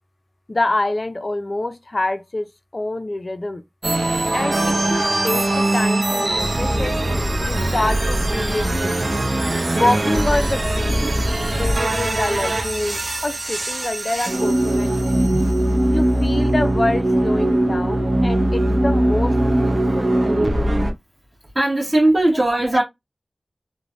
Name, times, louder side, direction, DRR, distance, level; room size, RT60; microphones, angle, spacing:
voice 1, 0.5-2.5 2.7-3.6 4.3-7.0 7.4-9.0 9.7-11.1 11.6-15.3 15.9-19.4 19.6-20.6, left 2 dB, 45° left, 0.4 m, -26 dB
sound 1, 3.8-20.9, right 1 dB, 55° right, 0.6 m, -20 dB
voice 2, 15.3-15.6 16.0-16.2 18.6-18.7 21.5-22.8, right 1 dB, 35° right, 1.1 m, -20 dB
3.1 x 2.1 x 2.5 m
wide cardioid pair, 75°, 0 cm